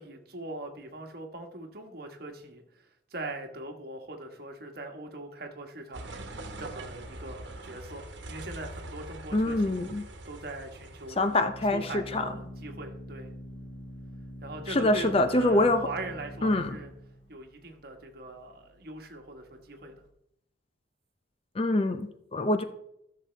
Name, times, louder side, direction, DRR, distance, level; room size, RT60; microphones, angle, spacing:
voice 1, 0.0-6.1 6.6-9.8 10.2-13.3 14.4-16.9 17.3-19.9, right 2 dB, 55° right, 4 dB, 1.3 m, -41 dB
sound 1, 5.9-11.4, right 2 dB, 70° right, 1.3 m, -43 dB
voice 2, 9.3-10.0 11.2-12.3 14.7-15.9 16.4-16.8 21.6-22.6, left 2 dB, 30° left, 9 dB, 0.5 m, -25 dB
Organ, 10.2-20.1, equal, 75° left, 1.9 m, -45 dB
14.5 x 6.7 x 3.3 m, 0.79 s
head